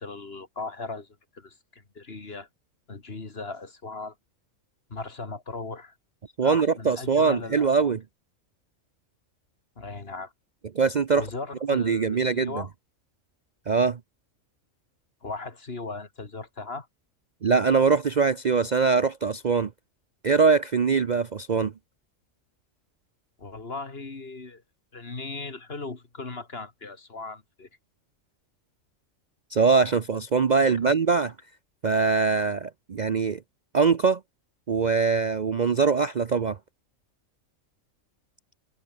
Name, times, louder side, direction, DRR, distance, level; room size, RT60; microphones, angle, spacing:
voice 1, 0.0-2.5 2.9-4.2 4.9-6.0 6.4-7.9 9.8-10.3 11.1-12.7 15.2-16.9 23.4-24.6 24.9-27.7 30.6-30.9, left 3 dB, 50° left, 2.6 m, -38 dB
voice 2, 6.4-8.0 10.7-11.3 11.7-12.5 13.7-14.0 17.4-19.7 20.2-21.7 29.5-31.3 31.8-33.4 33.7-34.2 34.7-36.6, right 5 dB, 40° right, 0.7 m, -22 dB
omnidirectional pair, 1.3 m